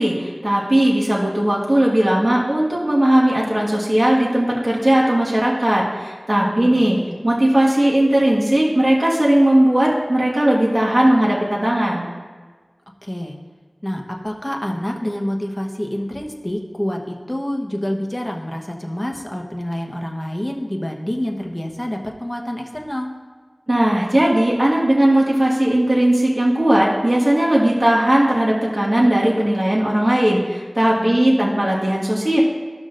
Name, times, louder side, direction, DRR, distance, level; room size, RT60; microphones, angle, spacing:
voice 1, 0.0-12.1 23.7-32.4, right 1 dB, 40° right, -6 dB, 1.7 m, -17 dB
voice 2, 6.4-7.2 13.0-13.4 13.8-23.1 31.0-31.7, left 1 dB, 15° left, 1 dB, 1.1 m, -27 dB
14.5 x 6.1 x 2.6 m, 1.4 s
wide cardioid pair, 45°, 0 cm